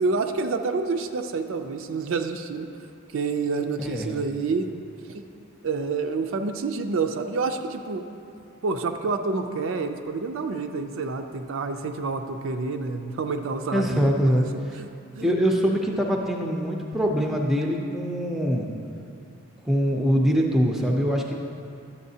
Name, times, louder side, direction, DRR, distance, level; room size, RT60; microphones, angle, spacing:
voice 1, 0.0-2.7 3.1-4.7 5.1-5.3 5.6-8.0 8.6-14.5 14.7-14.9 15.2-15.3, right 4 dB, 60° right, 6 dB, 0.4 m, -28 dB
voice 2, 3.8-4.1 13.7-14.8 15.2-18.7 19.6-21.3, equal, ahead, 0 dB, 0.4 m, -23 dB
11.0 x 7.0 x 2.7 m, 2.5 s
head